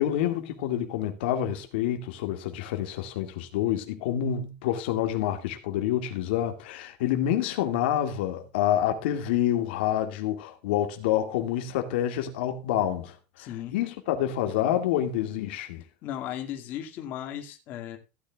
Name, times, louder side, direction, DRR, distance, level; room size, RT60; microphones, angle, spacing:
voice 1, 0.0-15.8, left 11 dB, 75° left, 2.1 m, -28 dB
voice 2, 13.4-13.8 16.0-18.0, left 11 dB, 35° left, 2.3 m, -36 dB
16.5 x 10.0 x 2.4 m
supercardioid pair, 175°, 6 cm